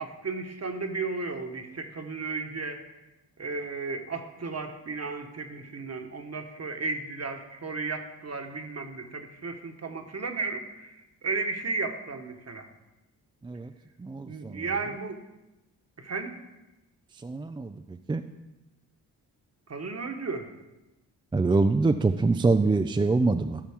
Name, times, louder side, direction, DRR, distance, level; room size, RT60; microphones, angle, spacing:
voice 1, 0.0-2.8 3.4-12.7 14.3-15.2 16.0-16.4 19.7-20.5, right 3 dB, 35° right, 6 dB, 1.3 m, -34 dB
voice 2, 14.0-14.6 17.2-18.2 21.3-23.6, right 3 dB, 10° right, 8 dB, 0.3 m, -25 dB
12.5 x 5.8 x 3.6 m, 1.0 s
supercardioid pair, 45°, 43 cm